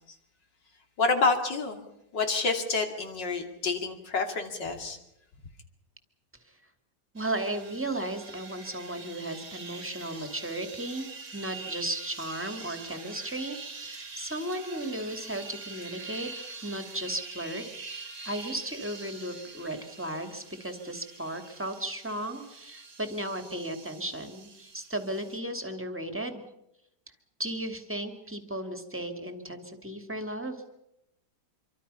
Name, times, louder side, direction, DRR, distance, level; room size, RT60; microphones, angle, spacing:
voice 1, 1.0-1.8 2.1-5.0, left 4 dB, 75° left, 4 dB, 3.4 m, -28 dB
voice 2, 7.1-11.1 11.3-16.3 16.6-17.6 18.2-26.4 27.4-30.6, right 1 dB, 5° right, 6 dB, 2.4 m, -35 dB
sound 1, 7.2-25.4, right 4 dB, 75° right, 3.5 m, -44 dB
27.0 x 24.0 x 5.6 m, 0.84 s
omnidirectional pair, 2.0 m